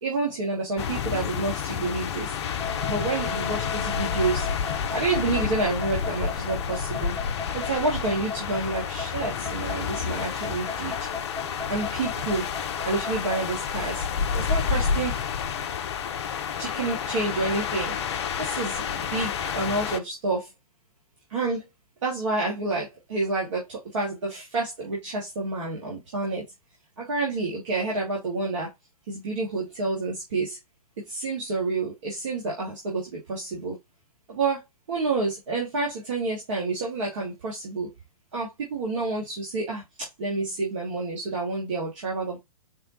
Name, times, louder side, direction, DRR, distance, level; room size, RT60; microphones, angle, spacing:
voice 1, 0.0-2.3 2.9-4.5 4.9-7.1 7.5-11.0 11.7-12.5 12.8-15.1 16.6-17.9 18.4-20.5 21.3-21.7 22.0-26.4 27.0-28.7 29.1-30.6 31.1-33.8 34.3-34.6 34.9-37.9 38.3-42.4, right 3 dB, 50° right, -3 dB, 1.3 m, -29 dB
sound 1, 0.8-20.0, left 7 dB, 45° left, 0.5 m, -30 dB
sound 2, 2.5-13.4, left 5 dB, 70° right, 3.0 m, -36 dB
4.3 x 2.2 x 4.0 m, 0.20 s
figure-of-eight pair, 110°, 19 cm